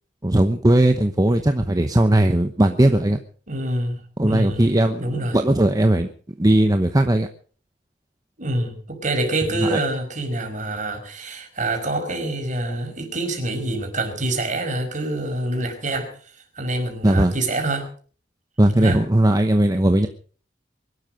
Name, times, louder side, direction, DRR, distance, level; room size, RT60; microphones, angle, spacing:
voice 1, 0.2-3.2 4.2-6.1 6.4-7.3 9.6-9.8 17.0-17.3 18.6-20.1, right 1 dB, 20° right, 6 dB, 1.0 m, -18 dB
voice 2, 3.5-4.0 4.3-4.7 5.0-5.4 8.4-16.1 16.6-17.9 18.8-19.0, right 2 dB, 45° right, 4 dB, 5.3 m, -26 dB
22.5 x 12.5 x 5.2 m, 0.43 s
head